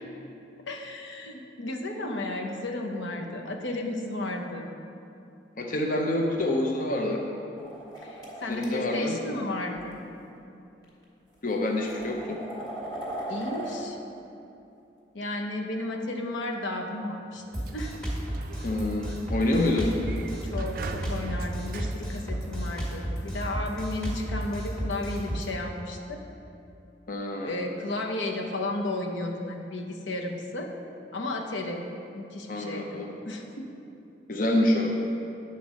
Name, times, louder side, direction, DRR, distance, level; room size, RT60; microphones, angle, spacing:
voice 1, 0.7-4.7 8.0-10.0 13.3-14.0 15.1-17.4 17.7-17.9 20.4-26.2 27.4-30.7 31.1-31.8 32.1-33.8, left 2 dB, 80° left, 2 dB, 0.8 m, -33 dB
voice 2, 5.6-7.2 8.5-9.2 11.4-12.4 18.6-19.9 27.1-27.6 32.5-33.1 34.3-34.9, left 1 dB, 45° left, 0 dB, 0.7 m, -27 dB
sound 1, 7.6-8.6 9.8-9.9 10.8-10.9 11.5-13.8, right 1 dB, 20° left, 1.5 m, -38 dB
Sliding door, 17.4-23.0, right 4 dB, 50° right, 0.3 m, -42 dB
Drum kit, 17.5-25.5, right 1 dB, 5° left, 1.5 m, -33 dB
9.7 x 4.2 x 6.2 m, 2.8 s
head